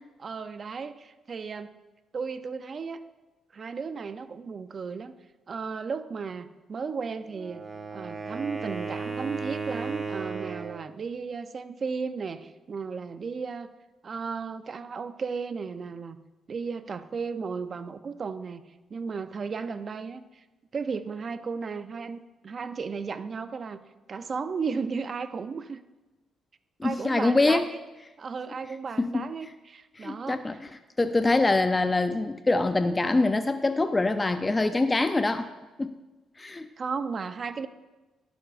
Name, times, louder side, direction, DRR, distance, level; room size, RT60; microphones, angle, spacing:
voice 1, 0.2-1.7 2.1-3.0 3.5-5.1 5.5-7.7 7.9-13.7 14.0-16.2 16.5-18.6 18.9-20.4 20.7-23.8 24.1-25.8 26.8-27.8 28.2-30.6 36.8-37.7, right 5 dB, 45° right, 11 dB, 0.5 m, -34 dB
Wind instrument woodwind instrument, 7.3-10.9, right 4 dB, 25° right, 1.3 m, -35 dB
voice 2, 26.8-27.7 29.0-29.2 30.0-30.7 31.0-35.5 35.8-36.0 36.4-36.7, left 2 dB, 20° left, 9 dB, 0.4 m, -24 dB
12.0 x 11.5 x 2.5 m, 1.1 s
cardioid pair, 90°, 0 cm